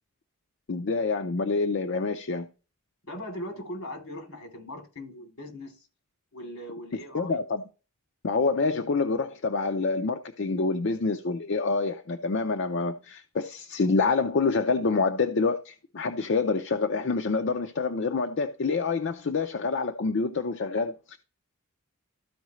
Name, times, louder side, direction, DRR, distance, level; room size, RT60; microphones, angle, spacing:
voice 1, 0.7-2.5 7.1-7.6 8.2-21.2, left 4 dB, 55° left, 0.5 m, -27 dB
voice 2, 3.1-5.9 6.3-7.4, left 1 dB, 70° left, 3.1 m, -39 dB
13.5 x 4.7 x 3.1 m
head